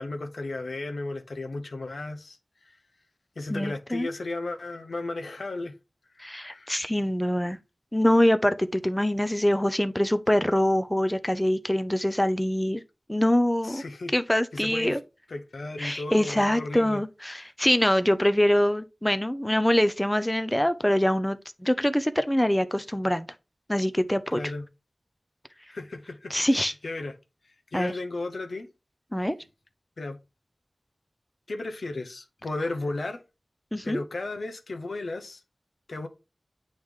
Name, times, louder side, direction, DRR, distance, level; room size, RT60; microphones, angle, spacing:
voice 1, 0.0-2.4 2.7-2.8 3.4-5.7 6.2-6.7 13.6-14.1 14.5-15.0 15.3-17.0 24.3-24.6 25.7-26.3 26.8-27.1 27.7-28.7 30.0-30.2 31.5-33.2 33.8-35.4 35.9-36.1, left 2 dB, 85° left, 0.8 m, -34 dB
voice 2, 3.5-4.1 6.2-7.6 7.9-12.8 13.1-13.8 14.1-15.0 15.8-23.3 23.7-24.4 26.3-26.7 27.7-27.9 29.1-29.4 33.7-34.0, left 1 dB, 10° left, 0.5 m, -24 dB
8.8 x 3.2 x 3.6 m
wide cardioid pair, 60°, 0 cm